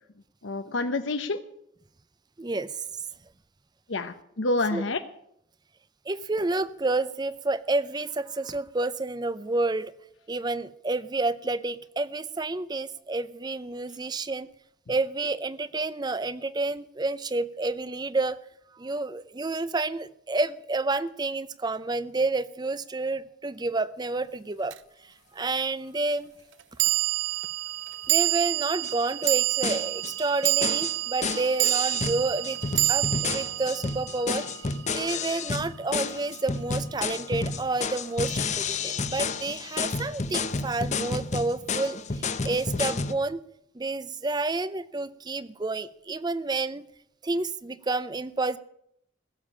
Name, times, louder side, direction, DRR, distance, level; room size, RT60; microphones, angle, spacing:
voice 1, 0.4-1.4 3.9-5.0, left 2 dB, 75° left, 0.8 m, -28 dB
voice 2, 2.4-2.7 4.7-4.9 6.1-9.9 10.3-14.5 14.9-18.4 18.8-24.8 25.3-26.3 28.1-32.6 32.9-34.5 34.9-42.0 42.4-43.4 43.7-46.8 47.2-48.6, right 3 dB, 20° right, 0.5 m, -29 dB
sound 1, 24.7-24.8 26.8-35.2, right 16 dB, 70° right, 0.5 m, -28 dB
sound 2, 28.8-28.9 29.2-29.3 29.6-30.1 30.4-43.1, left 4 dB, 35° left, 0.8 m, -31 dB
16.0 x 7.2 x 9.9 m
head